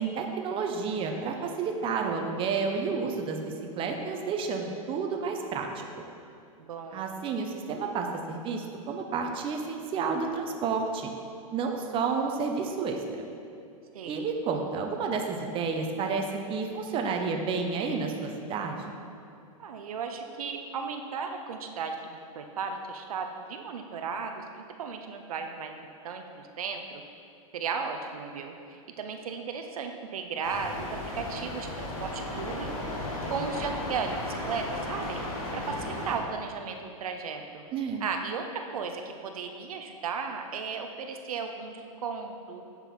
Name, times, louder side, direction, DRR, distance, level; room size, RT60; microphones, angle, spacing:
voice 1, 0.0-5.9 6.9-11.1 11.5-13.2 14.1-18.8 37.7-38.0, right 5 dB, 30° right, 3 dB, 0.8 m, -31 dB
voice 2, 6.6-7.1 13.9-14.3 19.6-24.4 24.8-25.7 26.0-27.0 27.5-32.8 33.3-35.2 35.5-37.6 38.0-42.6, right 5 dB, 80° right, 5 dB, 0.7 m, -35 dB
sound 1, 30.4-36.2, left 1 dB, 80° left, 1.9 m, -35 dB
8.0 x 5.5 x 4.3 m, 2.5 s
hypercardioid pair, 120°, 18 cm